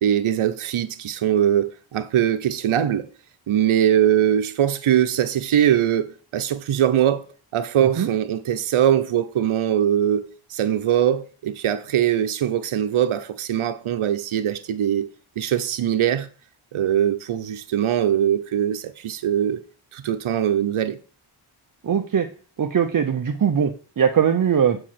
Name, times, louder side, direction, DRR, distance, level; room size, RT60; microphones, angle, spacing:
voice 1, 0.0-3.1 3.5-7.2 7.5-15.1 15.4-16.3 16.7-19.6 19.9-21.0, right 10 dB, 80° right, 0.9 m, -21 dB
voice 2, 21.8-22.3 22.6-24.8, right 8 dB, 40° right, 0.7 m, -20 dB
7.4 x 4.9 x 5.9 m
wide cardioid pair, 95°, 49 cm